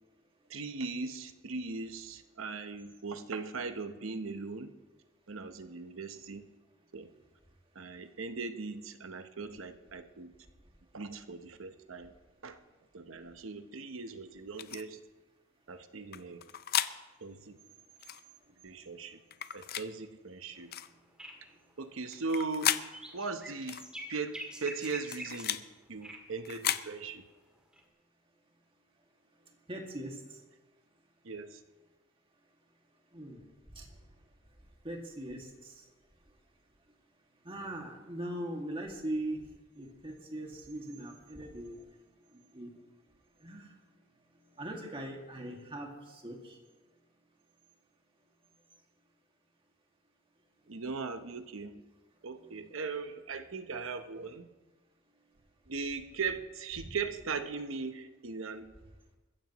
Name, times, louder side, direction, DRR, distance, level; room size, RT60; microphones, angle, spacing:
voice 1, 0.5-4.7 5.3-6.5 6.9-7.1 7.7-10.3 10.9-12.1 12.4-12.6 12.9-15.0 15.7-16.4 17.2-17.6 18.6-19.2 19.5-20.7 21.8-22.8 23.1-25.6 25.9-27.2 31.2-31.6 50.7-51.8 52.2-54.5 55.7-58.7, right 4 dB, 70° right, 9 dB, 0.9 m, -39 dB
sound 1, 14.6-14.8 16.1-16.9 18.0-18.2 19.3-19.9 20.7-20.9 22.1-22.9 23.7-23.9 24.8-25.6 26.4-26.9, left 11 dB, 50° left, 0.5 m, -34 dB
sound 2, 20.6-20.7 20.9-21.0 21.2-21.7 22.2-25.5 26.0-26.3 27.7-27.8, equal, 5° right, 2.1 m, -45 dB
voice 2, 29.7-30.2 33.1-33.4 33.8-33.9 34.8-35.7 37.4-39.5 39.8-41.8 42.3-42.7 43.4-43.7 44.6-46.6, right 1 dB, 25° right, 0 dB, 2.1 m, -40 dB
21.5 x 15.0 x 3.1 m, 1.2 s
head